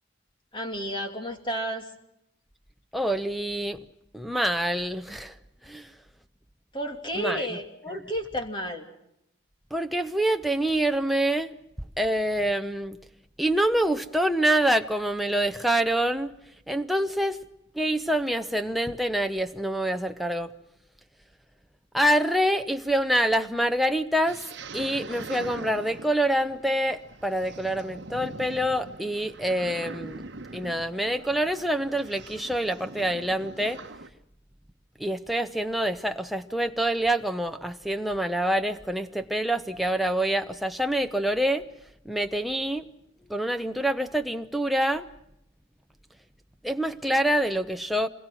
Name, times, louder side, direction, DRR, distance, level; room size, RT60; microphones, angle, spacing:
voice 1, 0.5-1.9 6.7-8.9, equal, 25° left, 2.7 m, -32 dB
voice 2, 2.9-3.8 4.1-5.4 5.6-5.9 7.1-7.6 9.7-11.5 12.0-13.0 13.4-16.3 16.7-17.4 17.7-20.5 21.9-24.5 24.7-30.2 30.5-33.8 35.0-41.7 42.0-42.9 43.3-45.1 46.6-48.1, right 1 dB, ahead, 0.8 m, -26 dB
sound 1, 24.3-34.1, right 3 dB, 60° right, 1.1 m, -42 dB
27.0 x 22.0 x 6.1 m
head